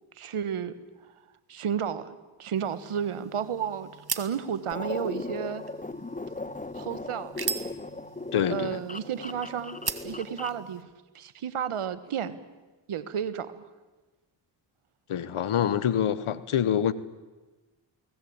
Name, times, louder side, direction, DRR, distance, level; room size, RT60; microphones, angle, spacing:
voice 1, 0.2-0.7 1.5-3.9 4.2-5.6 6.7-7.3 8.5-10.9 11.1-12.4 12.9-13.6, right 8 dB, 85° right, 14 dB, 1.6 m, -32 dB
sound 1, 2.5-10.8, right 5 dB, 50° right, 2.1 m, -40 dB
sound 2, 4.7-10.7, left 2 dB, 15° left, 1.1 m, -37 dB
voice 2, 8.3-8.8 15.1-16.9, left 9 dB, 80° left, 17 dB, 1.3 m, -26 dB
28.5 x 19.5 x 8.9 m, 1.2 s
cardioid pair, 40°, 49 cm